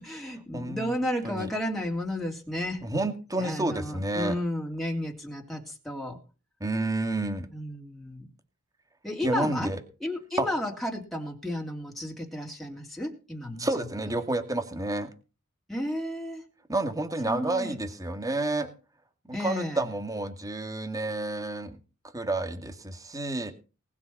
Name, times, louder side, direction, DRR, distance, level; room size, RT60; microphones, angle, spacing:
voice 1, 0.0-2.8 3.4-6.2 7.5-8.3 9.0-9.7 10.0-13.8 15.7-16.4 17.2-17.8 19.3-19.9, left 1 dB, ahead, -1 dB, 3.2 m, -33 dB
voice 2, 0.5-0.9 1.2-1.5 2.8-4.3 6.6-7.5 9.2-9.8 10.4-10.5 13.6-15.1 16.7-18.7 19.3-21.8 22.1-23.5, right 2 dB, 15° right, 8 dB, 2.2 m, -30 dB
19.5 x 7.3 x 6.0 m, 0.34 s
head